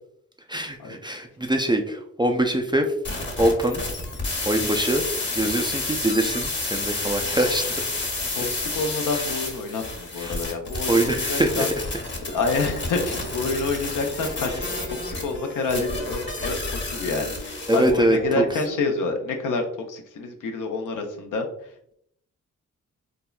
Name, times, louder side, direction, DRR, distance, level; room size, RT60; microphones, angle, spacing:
voice 1, 0.5-2.9 3.4-3.8 4.4-5.0 5.3-7.8 8.2-8.3 9.2-9.3 10.2-10.4 10.9-11.7 17.7-18.4, right 1 dB, 15° right, 4 dB, 0.4 m, -23 dB
sound 1, 3.0-17.9, left 2 dB, 35° left, 1.0 m, -30 dB
voice 2, 8.4-11.7 12.3-14.7 15.0-21.5, left 3 dB, 65° left, 4 dB, 0.6 m, -28 dB
sound 2, 12.5-19.1, right 2 dB, 85° right, 1.1 m, -40 dB
3.6 x 2.0 x 2.3 m, 0.69 s
supercardioid pair, 40°, 33 cm